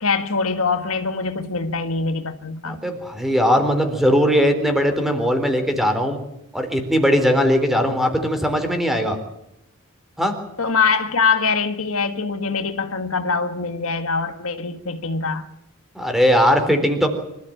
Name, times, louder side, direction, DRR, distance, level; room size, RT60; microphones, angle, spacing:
voice 1, 0.0-2.8 10.6-15.5, left 4 dB, 70° left, 1.7 m, -23 dB
voice 2, 2.7-6.2 6.5-9.2 10.2-10.3 15.9-17.1, equal, ahead, 3.8 m, -19 dB
25.0 x 14.5 x 8.8 m
head